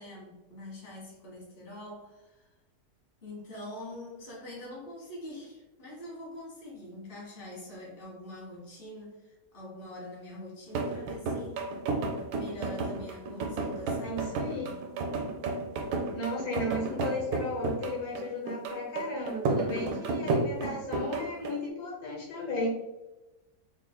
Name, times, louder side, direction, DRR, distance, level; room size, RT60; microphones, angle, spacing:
voice 1, 0.0-2.5 3.2-11.7 12.3-14.7 19.7-20.4, left 1 dB, 35° left, -5 dB, 1.5 m, -44 dB
sound 1, 10.7-21.6, right 3 dB, 80° right, 1.1 m, -32 dB
voice 2, 14.0-14.7 16.1-22.7, left 2 dB, 80° left, -3 dB, 1.6 m, -35 dB
3.6 x 3.3 x 2.2 m, 1.0 s
omnidirectional pair, 1.8 m